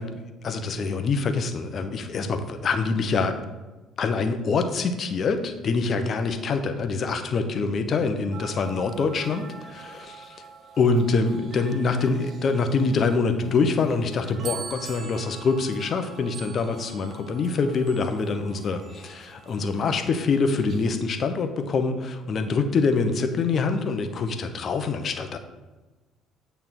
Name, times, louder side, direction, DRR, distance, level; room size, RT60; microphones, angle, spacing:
voice 1, 0.0-3.4 4.0-10.2 10.8-25.4, left 4 dB, 45° left, 8 dB, 0.8 m, -25 dB
sound 1, 8.3-20.9, right 6 dB, 45° right, 0.9 m, -44 dB
8.7 x 3.4 x 6.0 m, 1.2 s
figure-of-eight pair, 50°, 0 cm